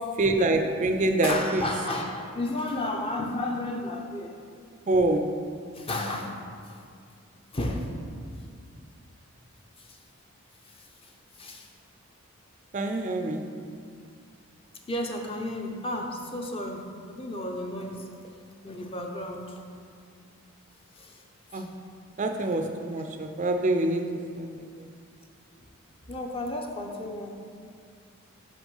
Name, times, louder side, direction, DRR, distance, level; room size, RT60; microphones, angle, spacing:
voice 1, 0.2-1.6 4.9-5.2 12.7-13.5 21.5-21.7 22.2-24.0 24.4-24.5, right 2 dB, 35° right, 5 dB, 0.4 m, -25 dB
voice 2, 1.2-4.3 5.7-6.4 6.6-6.8 7.5-8.0 9.8-10.0 10.7-11.7 14.9-18.1 18.6-19.6 20.9-21.2 21.5-21.7 22.4-22.5 26.1-27.3, left 1 dB, 25° left, 2 dB, 0.6 m, -33 dB
6.0 x 5.8 x 5.4 m, 2.2 s
head